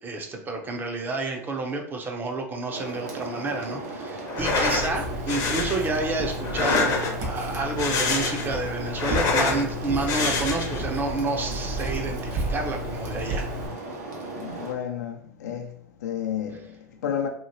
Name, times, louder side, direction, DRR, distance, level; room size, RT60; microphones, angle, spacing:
voice 1, 0.0-13.5, right 3 dB, 20° right, 0.6 m, -30 dB
sound 1, 2.7-14.7, right 2 dB, 75° right, 1.0 m, -36 dB
sound 2, 4.3-4.9 5.3-5.8 6.4-7.3 7.7-8.6 8.9-9.6 10.1-10.8, left 4 dB, 40° left, 0.7 m, -26 dB
Writing, 4.4-13.7, equal, 40° right, 1.0 m, -33 dB
voice 2, 14.4-15.7 16.0-17.3, left 9 dB, 80° left, 0.6 m, -31 dB
2.9 x 2.7 x 2.7 m
hypercardioid pair, 105°, 9 cm